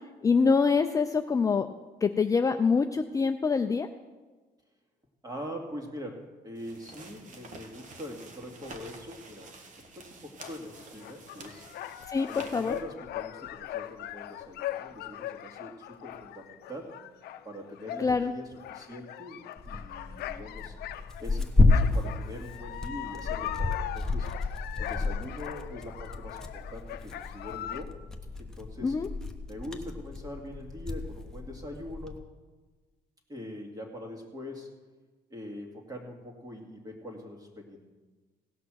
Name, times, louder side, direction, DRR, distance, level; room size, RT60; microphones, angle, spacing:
voice 1, 0.2-1.7 2.0-3.9 12.1-12.3 12.5-12.7 18.0-18.3 28.8-29.1, left 5 dB, 20° left, 7 dB, 0.4 m, -25 dB
voice 2, 5.2-9.5 9.9-11.7 12.3-16.9 17.4-20.7 21.2-24.3 24.8-27.9 28.4-29.0 29.5-32.2 33.3-34.7 35.3-37.8, equal, 20° right, 2 dB, 2.3 m, -43 dB
sound 1, 6.5-12.8, right 3 dB, 50° right, 1.4 m, -49 dB
sound 2, 10.4-21.4 21.7-27.8, left 13 dB, 70° left, 0.6 m, -40 dB
Tearing, 19.6-32.2, left 3 dB, 5° left, 1.0 m, -31 dB
17.0 x 6.0 x 6.3 m, 1.3 s
cardioid pair, 110°, 17 cm